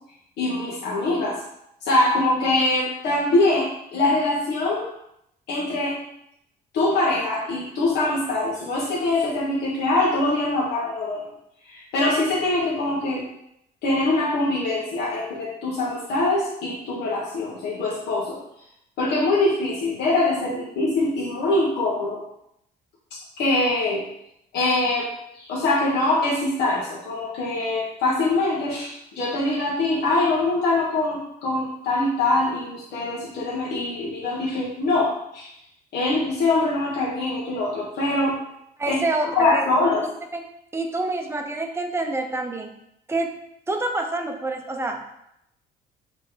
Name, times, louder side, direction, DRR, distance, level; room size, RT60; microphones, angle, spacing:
voice 1, 0.4-1.4 1.8-4.8 5.5-6.0 6.7-11.2 11.7-13.2 13.8-18.4 19.0-22.2 23.1-24.0 24.5-25.1 25.3-35.5 35.9-38.4 38.9-40.0, left 2 dB, 80° left, -6 dB, 1.5 m, -23 dB
voice 2, 38.8-39.7 40.3-40.4 40.7-42.7 43.1-43.3 43.7-45.1, right 2 dB, 15° right, 3 dB, 0.8 m, -27 dB
6.8 x 3.5 x 3.9 m, 0.78 s
cardioid pair, 110°, 17 cm